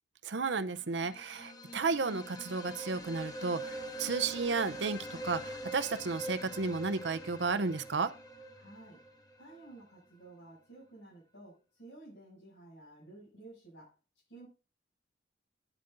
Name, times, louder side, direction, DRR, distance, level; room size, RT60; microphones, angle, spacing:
voice 1, 0.2-8.1, right 4 dB, 75° right, 0.7 m, -33 dB
sound 1, 0.9-9.7, equal, 20° left, 1.4 m, -44 dB
voice 2, 8.6-9.0 9.4-13.9 14.3-14.5, right 2 dB, 80° left, 7.1 m, -53 dB
11.5 x 10.0 x 2.6 m
head